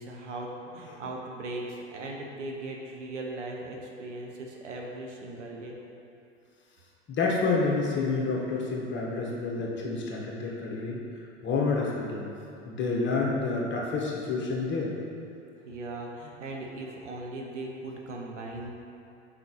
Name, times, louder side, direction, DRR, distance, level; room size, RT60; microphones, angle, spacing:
voice 1, 0.0-5.7 15.6-18.7, right 2 dB, 85° right, 0 dB, 1.0 m, -38 dB
voice 2, 7.1-11.0 11.4-12.3 12.6-14.9, left 3 dB, 30° left, -2 dB, 1.4 m, -28 dB
5.7 x 5.5 x 4.2 m, 2.7 s
hypercardioid pair, 85°, 35 cm